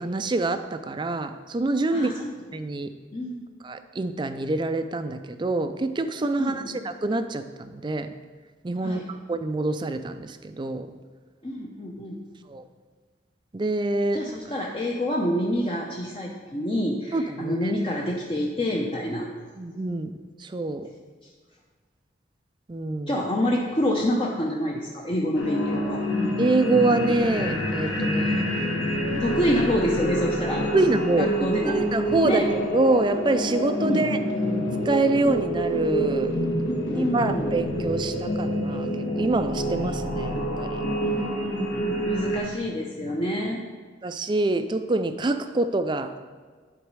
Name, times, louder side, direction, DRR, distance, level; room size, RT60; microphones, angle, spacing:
voice 1, 0.0-2.1 2.5-2.9 3.6-8.1 8.6-9.0 9.3-10.9 12.5-12.6 13.5-14.2 17.1-17.7 19.6-20.1 20.4-20.9 22.7-23.2 26.4-29.2 30.7-31.3 31.6-34.2 34.9-36.4 36.9-38.9 39.2-40.8 44.0-46.1, right 2 dB, 25° right, 10 dB, 0.4 m, -26 dB
voice 2, 1.9-2.3 3.1-3.5 6.4-6.8 8.8-9.1 11.4-12.2 14.1-19.3 23.1-26.0 29.2-30.6 31.2-31.8 32.2-32.5 33.8-34.0 36.9-37.6 41.0-43.6, equal, 30° left, -2 dB, 0.6 m, -27 dB
sound 1, 25.3-42.4, equal, 80° left, 1.3 m, -27 dB
11.0 x 4.1 x 4.7 m, 1.5 s
head